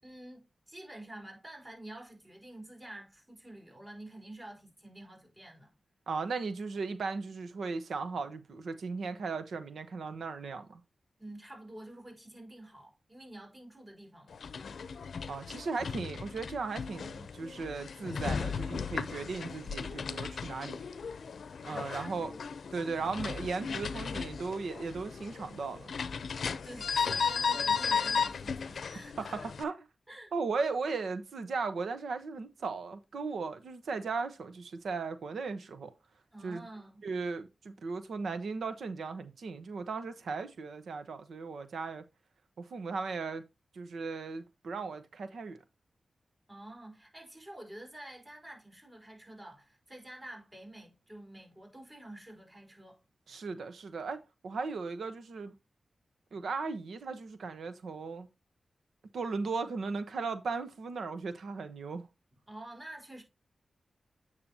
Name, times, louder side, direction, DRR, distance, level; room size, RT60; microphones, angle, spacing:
voice 1, 0.0-5.7 11.2-14.4 21.7-22.5 23.2-23.3 26.4-29.5 30.1-30.3 36.3-37.0 46.5-53.0 62.5-63.2, right 1 dB, 25° right, 4.5 m, -49 dB
voice 2, 6.1-10.8 15.3-20.8 21.6-22.3 22.7-25.9 29.2-29.8 30.3-35.9 36.4-36.7 37.0-42.0 42.6-43.4 43.7-45.6 53.3-55.5 56.3-58.3 59.1-62.1, right 4 dB, 85° right, 1.0 m, -37 dB
sound 1, 14.3-29.6, left 6 dB, 80° left, 0.6 m, -35 dB
8.8 x 6.6 x 2.8 m
cardioid pair, 60°, 0 cm